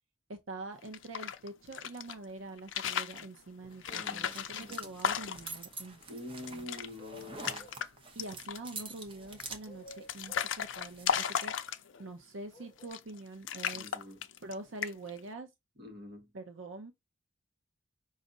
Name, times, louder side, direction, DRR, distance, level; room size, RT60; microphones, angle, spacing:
voice 1, 0.3-6.0 6.3-6.7 8.2-14.0 14.4-15.5 16.3-16.9, right 2 dB, 85° right, 0.7 m, -45 dB
sound 1, 0.8-2.2 2.6-3.3 3.8-5.6 6.0-6.1 6.4-6.9 7.2-7.9 8.2-8.7 9.4-12.1 12.8-13.2 13.5-14.5 14.8-15.2, left 8 dB, 75° left, 0.5 m, -35 dB
sound 2, 3.6-11.1, right 3 dB, 30° right, 0.8 m, -48 dB
voice 2, 3.9-5.0 6.1-7.7 13.7-14.2 15.8-16.3, left 1 dB, 55° right, 1.3 m, -46 dB
sound 3, 7.0-7.9 9.1-10.5 12.5-12.9, equal, 25° left, 0.9 m, -54 dB
5.1 x 2.5 x 3.9 m
head